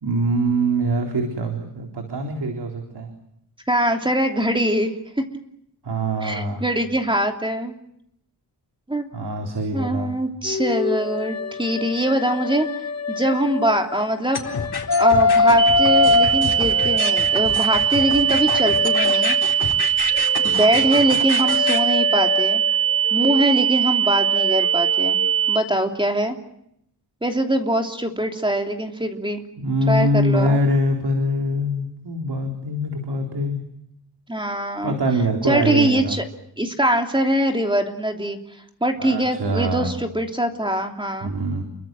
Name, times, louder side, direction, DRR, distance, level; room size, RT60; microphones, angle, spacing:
voice 1, 0.0-3.1 5.8-6.6 9.1-10.1 29.6-33.6 34.8-36.2 39.0-40.0 41.2-41.6, equal, 75° right, 3 dB, 3.9 m, -23 dB
voice 2, 3.7-5.2 6.2-7.7 8.9-9.1 9.7-12.7 13.1-14.5 15.0-19.4 20.4-22.6 23.1-25.2 25.5-26.4 27.2-29.4 29.9-30.6 34.3-35.0 35.4-36.2 36.6-38.4 38.8-41.3, right 1 dB, 10° right, 4 dB, 3.0 m, -22 dB
sound 1, 10.5-14.0 14.5-19.7 20.1-25.7, left 4 dB, 40° left, 1.2 m, -24 dB
sound 2, 14.3-21.8, left 5 dB, 70° left, 4.1 m, -29 dB
sound 3, 15.6-25.6, right 9 dB, 90° left, 4.1 m, -21 dB
29.0 x 23.5 x 7.8 m, 0.74 s
wide cardioid pair, 150°, 40 cm